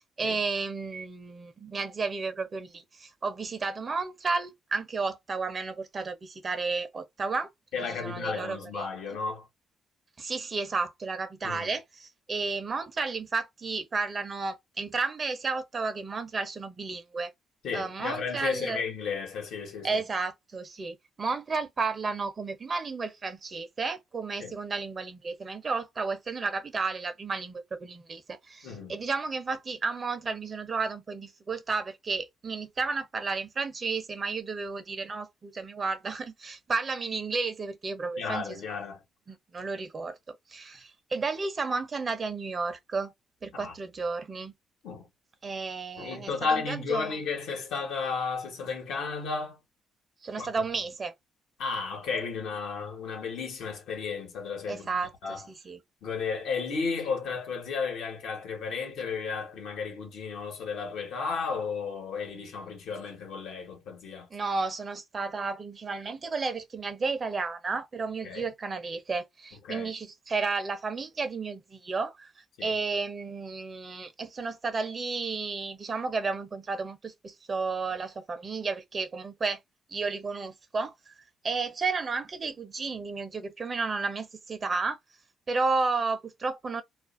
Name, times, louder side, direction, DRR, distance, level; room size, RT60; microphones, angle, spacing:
voice 1, 0.0-7.5 7.9-8.9 10.2-17.3 17.7-18.8 19.8-38.4 39.3-43.1 43.4-44.5 45.4-47.1 50.2-51.1 54.7-55.8 64.3-72.3 72.6-79.6 79.9-81.1 81.4-85.0 85.5-86.8, right 4 dB, 40° right, 0.6 m, -32 dB
voice 2, 7.7-9.5 11.4-11.7 17.6-20.0 24.4-24.6 28.6-29.0 38.2-39.0 43.5-43.7 44.8-45.1 46.0-49.6 50.4-50.5 51.6-54.9 55.2-55.5 56.0-64.3 68.2-68.5 69.7-69.9 72.6-72.7, left 5 dB, 80° left, 1.1 m, -33 dB
2.5 x 2.0 x 2.4 m
cardioid pair, 90°, 0 cm